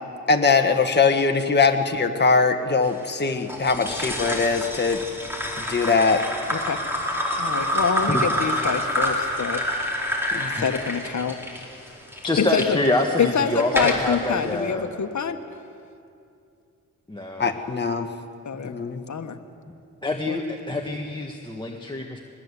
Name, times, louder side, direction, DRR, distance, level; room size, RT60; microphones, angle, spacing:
voice 1, 0.3-5.0 5.7-6.2 10.3-10.5 17.4-18.1 18.6-19.0, left 4 dB, 30° left, 4 dB, 1.5 m, -21 dB
sound 1, 3.5-12.7 13.2-14.2, equal, 5° right, 4.7 m, -27 dB
voice 2, 7.4-9.6 10.5-11.4 12.4-12.8 13.2-15.4 18.4-18.8 19.1-19.4 20.3-20.4, left 6 dB, 60° left, 6 dB, 1.5 m, -25 dB
voice 3, 12.2-14.8 17.1-17.5 20.0-22.2, left 2 dB, 15° left, 0 dB, 1.6 m, -26 dB
21.0 x 20.5 x 8.3 m, 2.5 s
wide cardioid pair, 90°, 32 cm